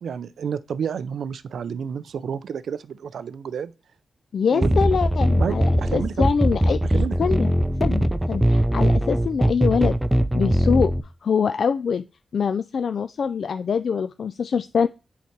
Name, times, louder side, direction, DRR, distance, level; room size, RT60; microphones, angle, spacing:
voice 1, 0.0-3.7 4.5-4.9 5.4-6.3 6.9-7.2, right 7 dB, 85° right, 0.4 m, -30 dB
voice 2, 4.3-7.5 7.8-10.0 10.3-10.9 11.2-12.0 12.3-14.9, left 6 dB, 70° left, 0.3 m, -24 dB
sound 1, 4.6-11.0, equal, 10° right, 0.5 m, -21 dB
7.1 x 4.6 x 4.5 m
cardioid pair, 80°, 0 cm